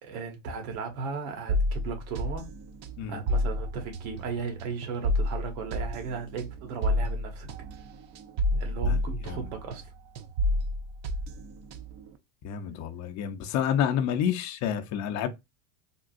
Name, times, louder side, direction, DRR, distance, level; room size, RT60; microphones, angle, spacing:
voice 1, 0.0-2.5 3.1-7.5 8.6-9.9, right 5 dB, 80° right, 1.3 m, -36 dB
sound 1, 1.5-9.9 10.1-12.1, left 1 dB, 40° right, 0.5 m, -30 dB
voice 2, 12.4-15.3, left 9 dB, 40° left, 0.6 m, -29 dB
3.7 x 2.3 x 2.5 m
supercardioid pair, 120°, 43 cm